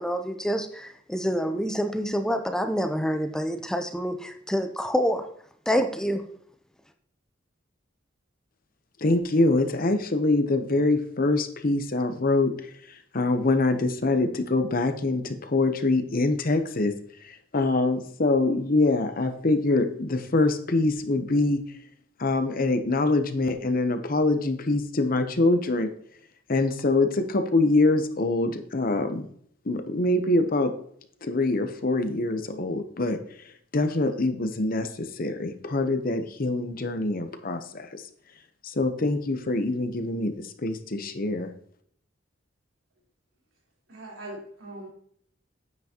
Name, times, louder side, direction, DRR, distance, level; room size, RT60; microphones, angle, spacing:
voice 1, 0.0-5.2 5.7-6.2, equal, 5° left, 7 dB, 0.5 m, -27 dB
voice 2, 9.0-12.5 13.1-16.9 17.2-21.6 22.2-25.9 26.5-29.3 29.7-30.7 31.2-33.2 33.7-37.9 38.6-41.5, left 2 dB, 45° left, 8 dB, 0.8 m, -24 dB
voice 3, 43.9-44.9, right 1 dB, 90° right, -3 dB, 3.8 m, -40 dB
9.4 x 7.9 x 2.9 m, 0.64 s
head